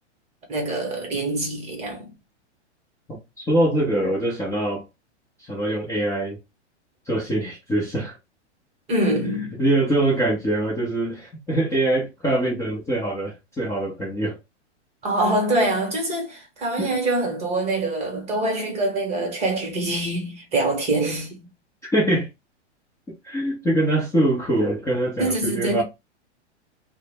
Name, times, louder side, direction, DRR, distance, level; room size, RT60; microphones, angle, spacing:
voice 1, 0.5-2.1 8.9-9.6 15.0-21.5 25.2-25.8, right 2 dB, 20° right, 0.8 m, -24 dB
voice 2, 3.1-4.8 5.4-6.4 7.1-8.2 9.6-14.4 16.8-16.9 21.8-22.3 23.2-25.8, right 1 dB, 5° left, 0.4 m, -23 dB
2.0 x 2.0 x 3.3 m
hypercardioid pair, 130°, 35 cm